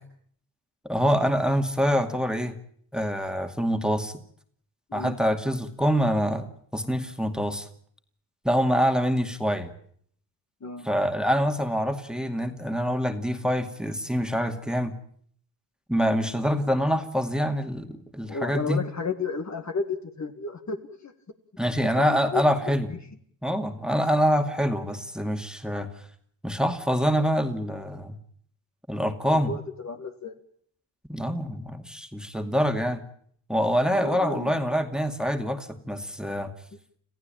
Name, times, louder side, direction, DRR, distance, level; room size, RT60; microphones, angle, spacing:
voice 1, 0.8-2.5 2.9-4.2 4.9-6.5 6.7-7.7 8.4-9.7 10.8-14.9 15.9-18.8 21.6-22.9 23.4-25.9 26.4-28.2 28.9-29.5 31.1-33.0 33.5-36.5, equal, ahead, 7 dB, 2.3 m, -25 dB
voice 2, 18.3-21.1 22.0-22.4 22.9-23.0 29.3-30.3 33.9-34.6, left 4 dB, 40° left, 7 dB, 2.0 m, -32 dB
27.5 x 15.0 x 9.0 m, 0.63 s
cardioid pair, 70°, 44 cm